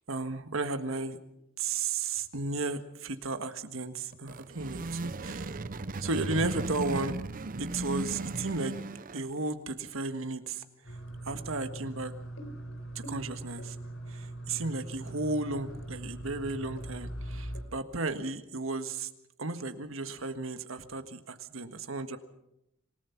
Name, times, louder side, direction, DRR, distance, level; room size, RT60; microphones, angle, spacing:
voice 1, 0.1-1.2 1.6-5.5 6.0-7.2 7.6-8.7 9.1-10.6 11.2-12.1 13.1-13.8 14.1-19.1 19.4-22.2, right 3 dB, 85° right, 8 dB, 1.7 m, -34 dB
sound 1, 4.1-9.4, right 2 dB, 45° right, 0.7 m, -36 dB
sound 2, 10.8-17.6, right 1 dB, 80° left, 3.9 m, -41 dB
27.0 x 18.0 x 5.9 m, 0.83 s
head